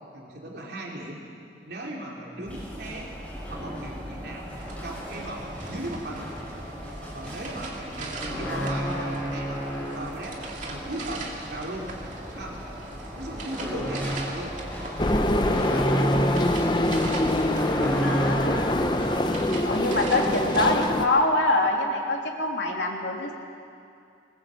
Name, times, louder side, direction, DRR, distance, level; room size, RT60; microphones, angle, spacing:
voice 1, 0.1-1.2 1.6-3.1 3.5-4.5 4.8-6.3 7.1-9.6 9.9-10.4 10.7-11.9 12.4-12.6 13.2-14.6 15.1-16.2 16.6-16.8 19.0-19.2, right 1 dB, 65° right, -2 dB, 3.4 m, -37 dB
sound 1, 2.4-19.2, equal, 5° left, 6.1 m, -33 dB
sound 2, 4.5-20.9, right 3 dB, 45° right, 2.4 m, -41 dB
voice 2, 8.4-9.1 18.0-18.8 19.6-23.3, left 2 dB, 85° left, 1 dB, 2.9 m, -25 dB
sound 3, 15.0-21.1, left 1 dB, 25° left, 0.9 m, -24 dB
21.0 x 20.0 x 7.7 m, 2.5 s
head